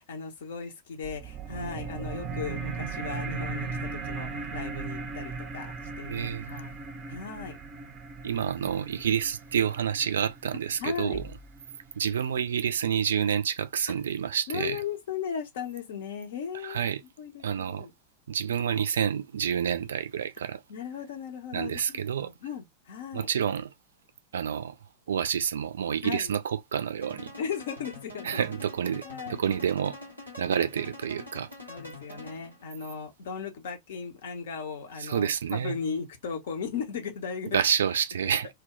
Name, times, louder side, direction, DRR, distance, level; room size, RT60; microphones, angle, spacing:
voice 1, 0.0-6.7 7.1-7.6 10.8-11.2 14.5-16.8 17.2-17.9 20.7-23.3 26.0-26.3 27.4-28.4 29.0-29.4 31.7-37.6, left 6 dB, 60° left, 0.7 m, -37 dB
sound 1, 1.0-12.0, right 4 dB, 25° right, 0.6 m, -38 dB
voice 2, 6.1-6.5 8.2-11.2 12.0-14.8 16.6-17.0 17.4-17.9 18.3-20.6 21.5-22.3 23.1-23.7 24.3-24.8 25.1-27.3 28.2-30.0 30.4-31.5 35.0-35.7 37.5-38.5, right 8 dB, 65° right, 0.3 m, -28 dB
sound 2, 11.1-12.1, left 2 dB, 15° left, 0.7 m, -46 dB
sound 3, 27.0-32.7, left 2 dB, 85° left, 1.1 m, -45 dB
2.2 x 2.1 x 3.6 m
figure-of-eight pair, 90°, 0 cm